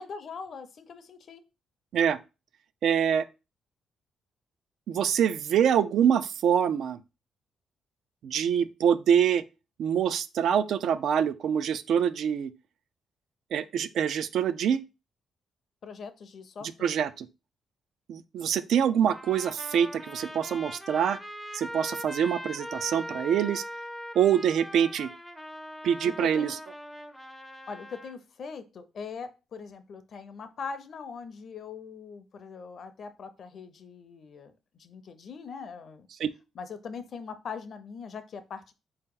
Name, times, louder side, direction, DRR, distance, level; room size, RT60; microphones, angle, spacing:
voice 1, 0.0-1.4 15.8-16.9 26.0-26.5 27.7-36.1 36.5-38.7, left 5 dB, 50° left, 0.5 m, -41 dB
voice 2, 2.8-3.3 4.9-7.0 8.2-9.4 9.8-12.5 13.5-14.8 16.8-17.3 18.1-21.2 21.5-23.6 24.1-25.1 25.8-26.6 36.2-36.3, right 8 dB, 70° right, 0.4 m, -25 dB
Trumpet, 19.1-28.2, equal, ahead, 0.5 m, -41 dB
4.2 x 2.9 x 3.7 m
cardioid pair, 140°, 0 cm